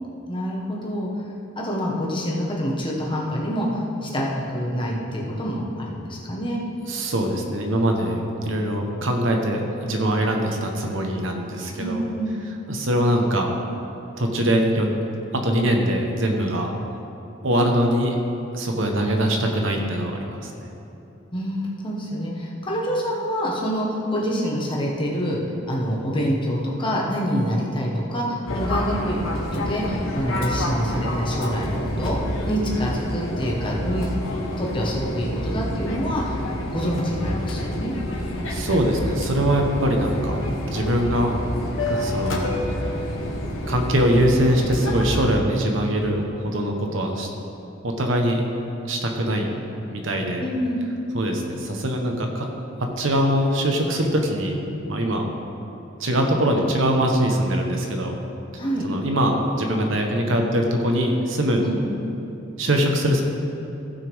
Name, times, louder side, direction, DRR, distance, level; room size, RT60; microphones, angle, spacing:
voice 1, 0.3-1.1 1.5-6.6 11.8-12.6 21.3-25.4 25.6-32.2 32.5-34.1 34.6-36.3 36.7-37.9 50.4-50.8 58.6-58.9 61.6-61.8, equal, 25° left, -3 dB, 1.4 m, -26 dB
voice 2, 6.9-12.0 12.7-13.5 14.2-14.9 15.3-16.7 17.4-18.1 18.5-20.5 38.5-40.4 40.7-41.3 41.9-42.5 43.7-47.3 47.8-48.4 48.9-49.5 49.9-50.4 51.1-52.5 53.0-54.5 54.9-55.2 56.0-58.1 58.8-61.6 62.6-63.2, equal, 70° right, 2 dB, 1.1 m, -22 dB
Fixed-wing aircraft airplane, 28.5-45.3, left 1 dB, 80° left, 1.4 m, -28 dB
15.5 x 6.1 x 3.6 m, 3.0 s
head